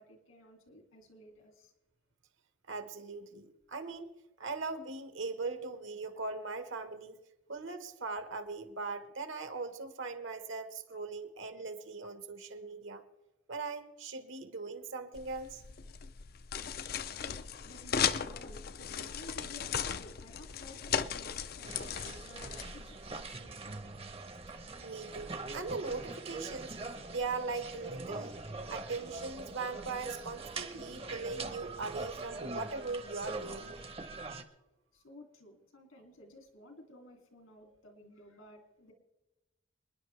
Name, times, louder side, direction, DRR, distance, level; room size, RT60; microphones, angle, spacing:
voice 1, 0.0-1.7 17.1-24.0 34.9-38.9, left 1 dB, 80° left, 3 dB, 2.6 m, -55 dB
voice 2, 2.7-4.1 4.4-7.2 7.5-13.0 13.5-15.6 24.8-28.4 28.7-33.8, right 3 dB, 65° right, 8 dB, 1.4 m, -40 dB
sound 1, 15.2-23.2, left 7 dB, 45° left, 0.5 m, -37 dB
sound 2, 21.7-34.4, right 3 dB, 30° right, 0.9 m, -43 dB
27.5 x 10.5 x 3.3 m, 1.0 s
head